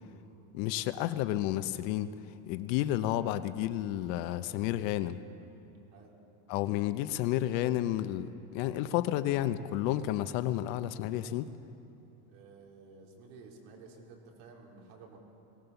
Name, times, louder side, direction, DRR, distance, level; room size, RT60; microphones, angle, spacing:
voice 1, 0.5-2.1 2.5-5.2 6.5-11.5, left 13 dB, 90° left, 11 dB, 0.9 m, -31 dB
voice 2, 12.3-15.2, right 4 dB, 70° right, -1 dB, 4.4 m, -53 dB
22.0 x 18.0 x 7.0 m, 2.9 s
cardioid pair, 170°, 49 cm